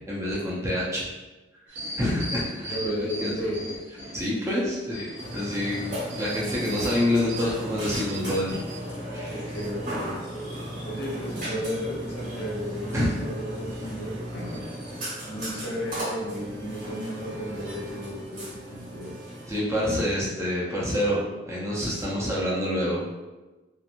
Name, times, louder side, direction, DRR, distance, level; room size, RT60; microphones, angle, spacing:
voice 1, 0.1-1.1 2.0-3.3 4.1-5.1 5.3-8.6 9.1-9.4 12.9-13.2 19.5-23.0, left 1 dB, 15° right, -6 dB, 0.5 m, -27 dB
sound 1, 1.7-4.4 4.8-8.8 9.3-9.7, equal, 65° right, 0.7 m, -38 dB
voice 2, 2.7-3.6 9.3-10.1 10.8-14.6 15.2-19.1, equal, 60° left, -5 dB, 0.9 m, -34 dB
Burping eructation, 5.2-19.6, equal, 45° right, 1.2 m, -36 dB
2.9 x 2.5 x 2.5 m, 1.1 s
head